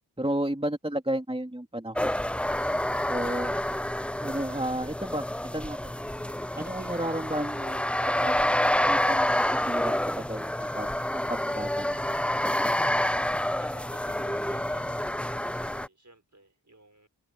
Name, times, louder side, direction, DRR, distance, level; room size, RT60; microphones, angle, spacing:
voice 1, 0.2-2.2 3.1-3.6 4.2-5.3 5.5-5.9 6.5-7.8 8.2-8.4 8.8-12.0, right 1 dB, 10° right, 3.5 m, -32 dB
sound 1, 2.0-15.9, left 1 dB, 5° left, 0.4 m, -28 dB
voice 2, 6.5-6.9 13.6-17.1, right 2 dB, 40° right, 5.4 m, -52 dB
wide cardioid pair, 45°, 44 cm